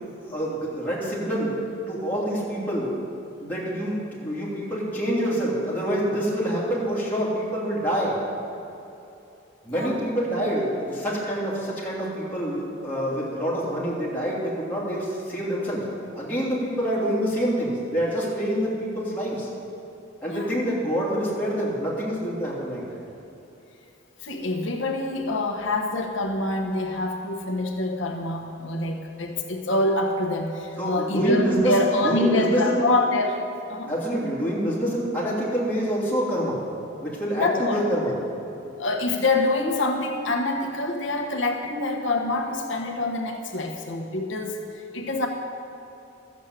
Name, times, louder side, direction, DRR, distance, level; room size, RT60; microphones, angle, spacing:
voice 1, 0.2-1.5 1.9-2.9 3.4-8.2 9.6-15.8 16.1-19.5 20.2-23.0 30.8-31.7 32.0-32.8 33.9-36.6 37.0-38.1, equal, 10° left, -8 dB, 3.0 m, -26 dB
voice 2, 20.3-20.6 24.2-33.4 33.7-33.9 37.4-37.8 38.8-45.3, left 2 dB, 70° left, 2 dB, 1.1 m, -26 dB
13.0 x 7.3 x 8.3 m, 2.8 s
head